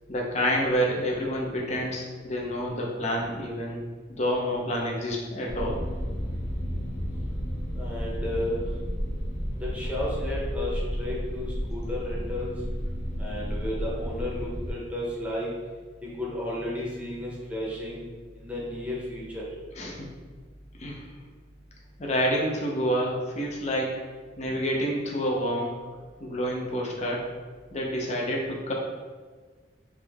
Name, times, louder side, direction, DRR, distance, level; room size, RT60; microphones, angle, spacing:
voice 1, 0.1-3.8 4.1-5.8 19.8-20.1 20.8-21.0 22.0-24.0 24.4-25.8 26.2-27.3 27.7-28.7, equal, 35° left, -2 dB, 0.7 m, -28 dB
sound 1, 5.5-14.7, equal, 55° left, 1.2 m, -32 dB
voice 2, 7.8-8.6 9.6-12.5 13.2-15.5 16.0-18.0 18.3-19.4, left 1 dB, 5° right, -5 dB, 0.9 m, -33 dB
3.6 x 3.2 x 3.5 m, 1.5 s
head